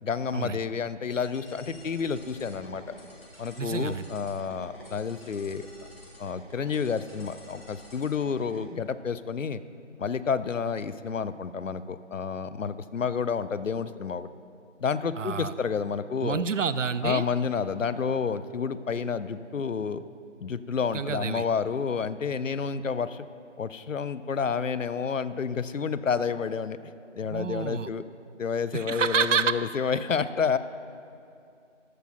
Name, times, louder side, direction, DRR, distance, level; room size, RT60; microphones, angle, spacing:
voice 1, 0.0-2.9 3.4-5.7 6.2-9.6 10.0-14.3 14.8-16.5 17.0-20.0 20.4-23.2 23.6-26.8 27.1-28.0 28.4-30.6, left 6 dB, 80° left, 14 dB, 0.5 m, -30 dB
sound 1, 1.1-8.6, equal, 50° left, 1.9 m, -49 dB
voice 2, 3.6-4.1 15.2-15.5 16.2-17.2 20.9-21.4 27.3-27.9 28.7-29.6, right 6 dB, 75° right, 15 dB, 0.5 m, -28 dB
13.5 x 4.5 x 5.9 m, 2.5 s
figure-of-eight pair, 170°, 38 cm